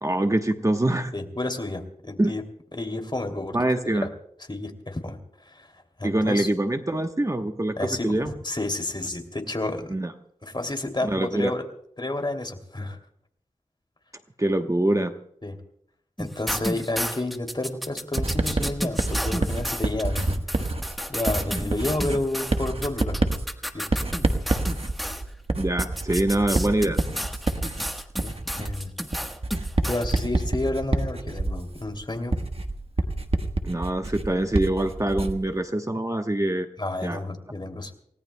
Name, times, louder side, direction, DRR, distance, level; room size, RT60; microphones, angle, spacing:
voice 1, 0.0-1.1 2.2-2.3 3.5-4.1 6.0-8.3 9.9-10.1 11.0-11.5 14.4-15.1 25.6-27.0 33.6-36.7 37.0-37.2, right 1 dB, 25° right, 5 dB, 1.0 m, -24 dB
voice 2, 1.1-2.4 2.7-3.6 3.8-4.0 4.5-5.7 6.0-6.5 7.8-9.9 10.4-11.6 12.0-13.0 15.4-15.6 16.2-20.7 21.1-23.2 23.7-23.8 28.1-28.9 29.9-32.4 36.8-37.9, left 2 dB, 35° left, 4 dB, 2.7 m, -30 dB
sound 1, 16.2-25.2 25.8-30.2, equal, ahead, 1.2 m, -32 dB
Writing, 18.2-35.5, right 2 dB, 45° right, 1.3 m, -28 dB
28.5 x 18.0 x 2.2 m, 0.71 s
wide cardioid pair, 65°, 13 cm